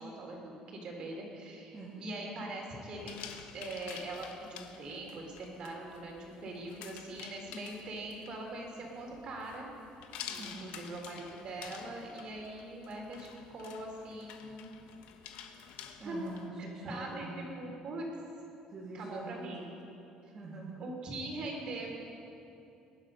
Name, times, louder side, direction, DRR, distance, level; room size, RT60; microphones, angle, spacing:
voice 1, 0.0-3.2 3.5-9.7 10.3-14.7 16.0-16.2 16.8-18.1 18.9-19.6 20.8-21.9, right 2 dB, 40° right, 0 dB, 3.3 m, -42 dB
sound 1, 3.0-16.5, left 8 dB, 80° left, 1.2 m, -49 dB
voice 2, 10.4-10.8 16.0-17.4 18.7-19.5 20.3-20.8, right 3 dB, 25° right, -7 dB, 2.2 m, -44 dB
21.5 x 11.5 x 5.4 m, 2.8 s
cardioid pair, 170°, 2 cm